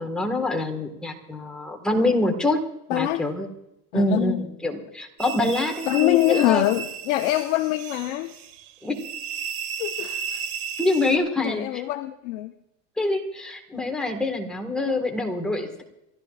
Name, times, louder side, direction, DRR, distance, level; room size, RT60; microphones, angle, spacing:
voice 1, 0.0-2.6 2.9-3.5 3.9-6.7 8.8-9.0 10.8-11.8 13.0-15.8, left 2 dB, ahead, 1 dB, 1.7 m, -25 dB
voice 2, 2.9-3.2 3.9-4.4 5.8-8.3 9.8-10.4 11.4-12.5, left 15 dB, 70° left, 5 dB, 1.0 m, -24 dB
sound 1, 5.2-11.2, right 7 dB, 70° right, 1.7 m, -34 dB
29.0 x 13.0 x 2.5 m, 0.86 s
cardioid pair, 160°, 36 cm